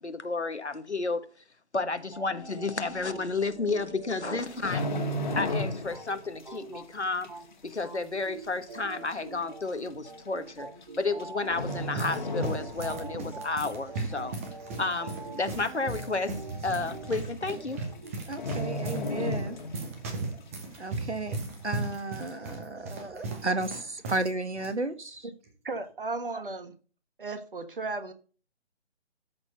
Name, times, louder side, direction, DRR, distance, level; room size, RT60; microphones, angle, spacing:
voice 1, 0.0-1.2 1.7-5.0 5.3-7.3 7.6-10.7 11.0-14.3 14.8-16.4 16.6-17.8, left 3 dB, 80° left, 1.4 m, -31 dB
sound 1, 2.1-7.5 7.8-18.1, right 4 dB, 35° right, 2.6 m, -45 dB
sound 2, 4.4-6.1 6.4-6.7 7.2-7.3 8.2-8.3 8.5-8.6 9.5-9.7 10.8-11.2 11.5-13.1 13.4-13.6 14.1-14.6 15.0-15.1 15.3-15.4 15.8-15.9 16.9-17.0 17.2-17.5 17.8-17.9 18.3-20.0 20.3-20.4, left 1 dB, 45° left, 1.7 m, -33 dB
sound 3, 11.4-24.3 24.5-24.7 25.4-25.7, right 3 dB, 15° right, 1.0 m, -37 dB
voice 2, 18.3-19.6 20.8-21.4 21.6-25.3, right 2 dB, 80° right, 1.7 m, -33 dB
voice 3, 25.6-26.7 27.2-28.1, right 3 dB, 50° right, 1.5 m, -35 dB
13.0 x 4.4 x 6.7 m
figure-of-eight pair, 145°, 34 cm